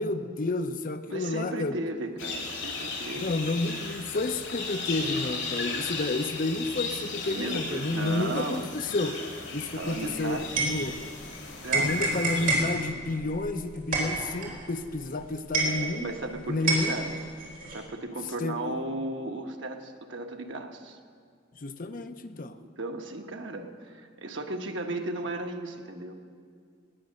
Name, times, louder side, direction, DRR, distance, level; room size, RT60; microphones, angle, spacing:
voice 1, 0.0-1.8 3.2-9.2 9.5-10.9 11.7-16.1 16.5-17.0 18.4-18.6 21.6-22.6, left 2 dB, 45° left, 9 dB, 0.7 m, -30 dB
voice 2, 1.1-3.9 7.3-8.7 9.7-10.6 11.6-12.3 15.6-17.2 17.7-21.0 22.8-26.1, right 2 dB, 80° right, 4 dB, 1.3 m, -36 dB
sound 1, 2.2-12.5, left 4 dB, 80° left, 3.2 m, -36 dB
sound 2, 9.8-11.3 11.7-16.3 16.7-17.8, right 2 dB, 50° right, 4.1 m, -29 dB
19.0 x 9.4 x 6.5 m, 2.1 s
head